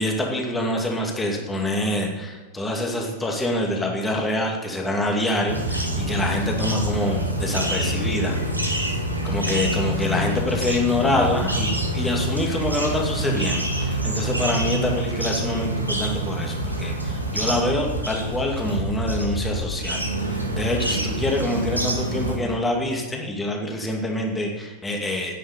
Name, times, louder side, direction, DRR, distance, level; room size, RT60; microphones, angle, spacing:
voice 1, 0.0-8.4 8.7-8.8 9.2-25.4, left 1 dB, 10° left, 1 dB, 2.5 m, -26 dB
sound 1, 5.5-22.3, right 1 dB, 85° right, 2.1 m, -26 dB
10.0 x 9.8 x 6.8 m, 1.3 s
figure-of-eight pair, 90°, 0 cm